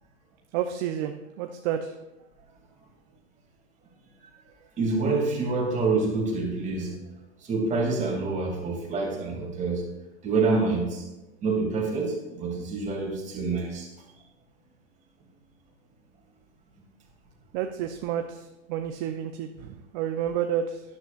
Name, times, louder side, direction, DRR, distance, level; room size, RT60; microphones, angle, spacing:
voice 1, 0.5-1.9 17.5-20.8, right 9 dB, 40° right, 6 dB, 0.7 m, -30 dB
voice 2, 4.8-7.0 7.4-9.8 10.2-11.1 11.4-13.9, right 3 dB, 20° right, -1 dB, 2.7 m, -27 dB
12.0 x 11.5 x 2.5 m, 0.97 s
hypercardioid pair, 130°, 35 cm